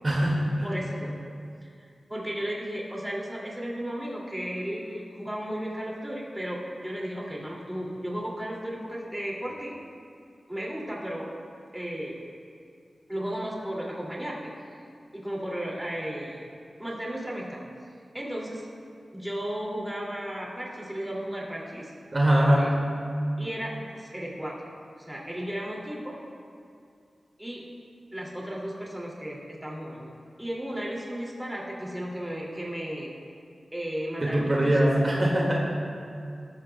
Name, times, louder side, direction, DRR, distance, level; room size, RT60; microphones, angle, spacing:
voice 1, 0.0-0.7 22.1-22.8 34.2-35.7, right 1 dB, 35° right, -4 dB, 1.9 m, -22 dB
voice 2, 0.6-1.2 1.6-9.7 10.5-11.3 11.7-12.2 13.1-14.5 15.1-16.4 16.8-17.6 18.1-18.7 19.1-21.9 22.4-22.7 23.4-24.6 25.0-26.2 27.4-27.7 28.1-30.1 30.4-33.1 33.7-34.9, equal, 10° right, -4 dB, 2.4 m, -34 dB
18.0 x 14.0 x 2.2 m, 2.4 s
wide cardioid pair, 95°, 0 cm